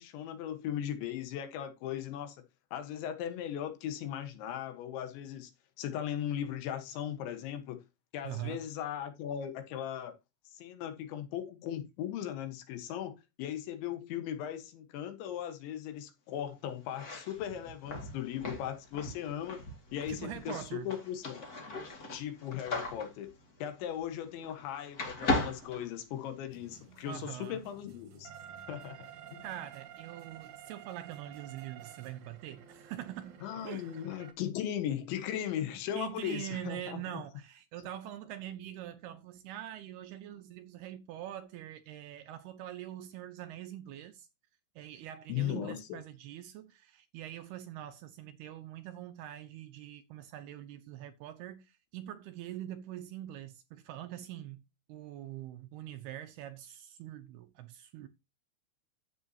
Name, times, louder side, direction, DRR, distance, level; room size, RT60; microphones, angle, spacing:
voice 1, 0.0-2.4 2.7-5.5 5.8-7.8 8.1-10.1 10.5-19.6 19.9-21.5 22.1-23.3 23.6-28.3 28.7-29.0 29.3-29.4 33.4-37.2 45.3-46.0, left 10 dB, 80° left, 3.7 m, -38 dB
voice 2, 8.2-8.6 20.1-20.9 27.1-27.6 29.4-33.9 36.0-44.3 44.8-54.6 54.9-58.1, right 12 dB, 75° right, 2.5 m, -44 dB
sound 1, 16.8-24.7 24.9-26.6, left 2 dB, 45° left, 1.1 m, -38 dB
sound 2, 26.5-34.3, right 9 dB, 55° right, 2.3 m, -51 dB
12.5 x 8.2 x 2.9 m
omnidirectional pair, 5.3 m